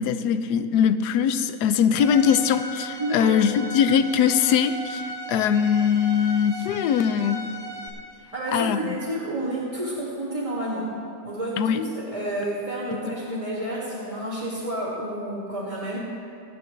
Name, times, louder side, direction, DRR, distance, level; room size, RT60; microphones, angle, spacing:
voice 1, 0.0-7.5 8.5-8.8 11.6-11.8 12.9-13.0, left 8 dB, 75° left, 11 dB, 1.1 m, -21 dB
Bowed string instrument, 1.9-7.9, right 1 dB, 40° right, 1.6 m, -36 dB
voice 2, 3.0-3.3 8.3-10.9 11.2-16.0, right 1 dB, 20° right, -10 dB, 2.1 m, -30 dB
25.0 x 9.1 x 3.2 m, 2.6 s
omnidirectional pair, 1.8 m